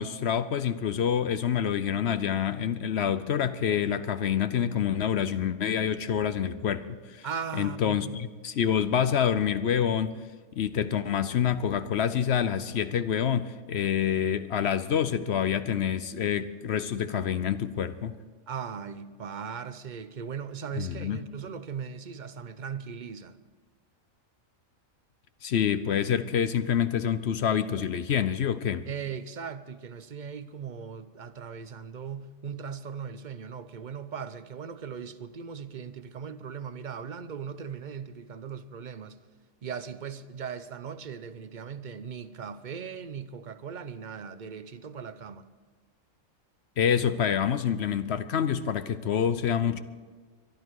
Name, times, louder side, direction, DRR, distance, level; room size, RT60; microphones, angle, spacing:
voice 1, 0.0-7.3 7.5-10.2 10.6-18.1 20.7-21.2 25.4-28.9 46.8-49.8, left 8 dB, 60° left, 0.8 m, -27 dB
voice 2, 7.2-8.2 18.5-23.4 28.9-39.2 39.6-45.4, right 6 dB, 45° right, 0.6 m, -38 dB
22.5 x 12.0 x 4.7 m
omnidirectional pair, 1.4 m